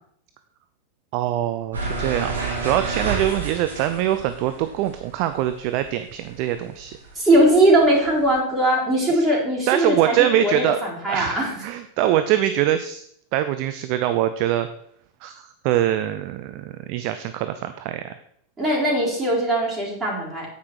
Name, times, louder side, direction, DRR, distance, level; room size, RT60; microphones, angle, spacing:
voice 1, 1.1-6.9 9.7-10.8 11.1-13.0 13.3-14.7 15.2-18.2, right 12 dB, 45° right, 10 dB, 0.6 m, -23 dB
sound 1, 1.7-6.4 6.7-8.3, right 4 dB, 70° right, 3.0 m, -30 dB
voice 2, 7.1-11.6 18.6-20.5, right 1 dB, 20° right, -6 dB, 4.3 m, -20 dB
9.5 x 8.4 x 4.7 m, 0.68 s
figure-of-eight pair, 90°, 0 cm